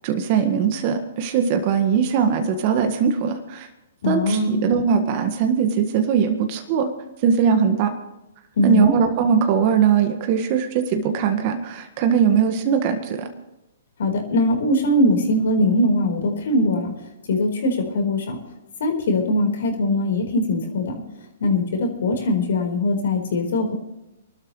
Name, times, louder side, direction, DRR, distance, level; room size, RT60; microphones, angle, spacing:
voice 1, 0.0-3.7 4.1-6.9 7.2-7.9 8.6-13.3, right 7 dB, 45° right, 6 dB, 1.6 m, -20 dB
voice 2, 4.0-4.6 8.6-8.9 14.0-16.9 17.3-18.4 18.8-21.0 21.4-23.7, left 1 dB, 65° left, 4 dB, 4.3 m, -21 dB
25.5 x 12.5 x 3.2 m, 0.92 s
hypercardioid pair, 120°, 0 cm